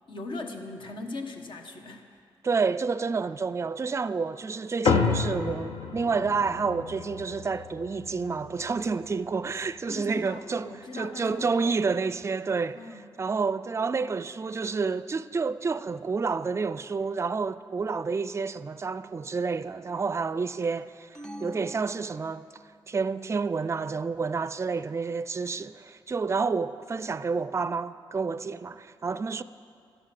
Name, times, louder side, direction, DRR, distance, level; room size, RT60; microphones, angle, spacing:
voice 1, 0.1-2.2 9.9-11.8 12.7-13.0, left 2 dB, 65° left, 1.3 m, -39 dB
voice 2, 2.4-12.8 13.2-21.1 21.4-22.5 22.9-29.4, right 4 dB, 30° right, 0.4 m, -29 dB
sound 1, 4.8-9.6, left 5 dB, 80° left, 0.9 m, -30 dB
sound 2, 21.1-22.8, equal, 5° left, 0.9 m, -44 dB
12.5 x 11.5 x 6.0 m
cardioid pair, 80°, 9 cm